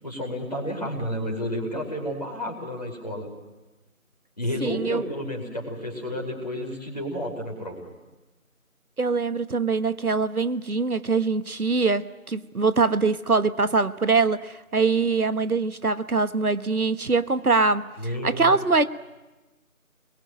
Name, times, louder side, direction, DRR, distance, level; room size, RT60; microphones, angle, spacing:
voice 1, 0.0-3.3 4.4-7.9 18.0-18.5, equal, 30° left, -1 dB, 4.7 m, -31 dB
voice 2, 4.6-5.0 9.0-18.8, right 4 dB, 85° right, 13 dB, 1.3 m, -23 dB
27.5 x 22.0 x 9.0 m, 1.1 s
figure-of-eight pair, 180°, 43 cm